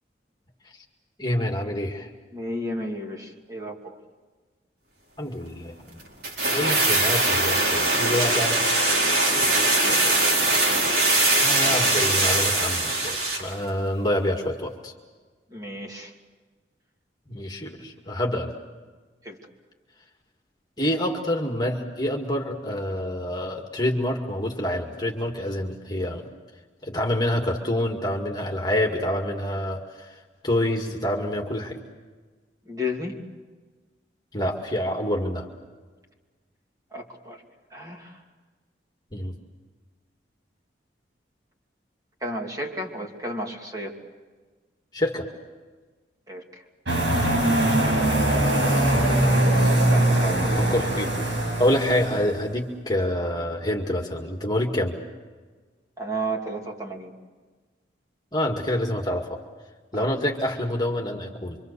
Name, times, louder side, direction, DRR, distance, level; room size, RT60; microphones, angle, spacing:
voice 1, 1.2-2.1 5.2-6.0 6.5-8.6 11.4-14.9 17.3-18.5 20.8-26.3 26.8-31.8 34.3-35.5 39.1-39.3 44.9-45.3 50.6-51.1 51.6-55.0 58.3-59.4 59.9-61.6, left 1 dB, 20° left, 1 dB, 2.2 m, -27 dB
voice 2, 2.3-4.0 9.8-10.3 15.5-16.1 19.2-19.4 32.7-33.2 36.9-37.4 37.7-38.2 42.2-43.9 46.3-46.6 49.8-50.4 56.0-57.1 59.9-60.1, equal, 20° right, 0 dB, 2.7 m, -33 dB
sound 1, 6.2-13.5 13.8-13.9, right 2 dB, 60° right, 4.8 m, -21 dB
sound 2, 46.9-52.4, right 1 dB, 80° right, 7.2 m, -21 dB
26.0 x 25.5 x 6.9 m, 1.4 s
head